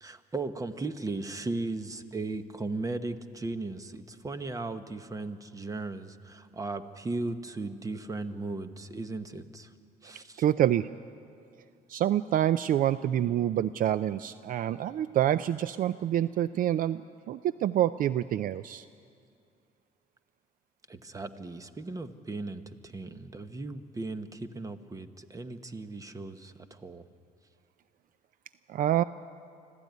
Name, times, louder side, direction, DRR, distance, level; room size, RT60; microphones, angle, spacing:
voice 1, 0.0-9.7 10.0-10.4 20.9-27.0, right 3 dB, 20° right, 10 dB, 1.1 m, -37 dB
voice 2, 10.4-10.9 11.9-17.0 17.3-18.9 28.7-29.0, right 11 dB, 55° right, 15 dB, 0.4 m, -27 dB
24.5 x 15.0 x 9.4 m, 2.4 s
cardioid pair, 110°, 17 cm